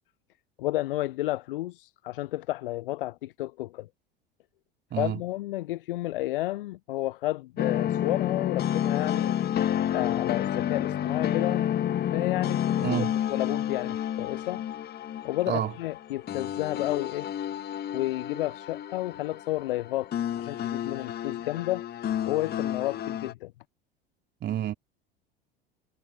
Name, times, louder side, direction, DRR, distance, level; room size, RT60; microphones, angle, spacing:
voice 1, 0.6-3.9 5.0-9.3 9.9-11.7 12.1-13.0 13.3-14.6 15.2-17.3 17.9-20.1 20.4-21.8 22.3-23.5, left 17 dB, 65° left, 0.7 m, -31 dB
voice 2, 4.9-5.2 12.8-13.1 15.5-15.7 24.4-24.7, right 11 dB, 35° right, 2.9 m, -28 dB
sound 1, 7.6-23.3, left 10 dB, 35° left, 1.9 m, -30 dB
figure-of-eight pair, 75°, 29 cm